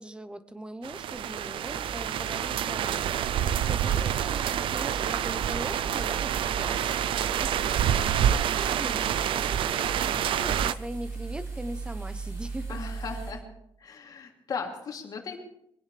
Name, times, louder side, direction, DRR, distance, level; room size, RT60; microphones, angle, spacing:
voice 1, 0.0-7.0 7.3-12.8, right 1 dB, 10° right, 12 dB, 0.8 m, -41 dB
sound 1, 0.8-10.7, right 10 dB, 80° right, 0.5 m, -27 dB
sound 2, 1.7-13.3, right 3 dB, 40° right, 6.7 m, -39 dB
voice 2, 9.8-10.4 12.7-13.4 13.8-15.4, left 5 dB, 50° left, 0 dB, 3.0 m, -38 dB
23.5 x 16.5 x 3.4 m, 0.75 s
wide cardioid pair, 175°, 9 cm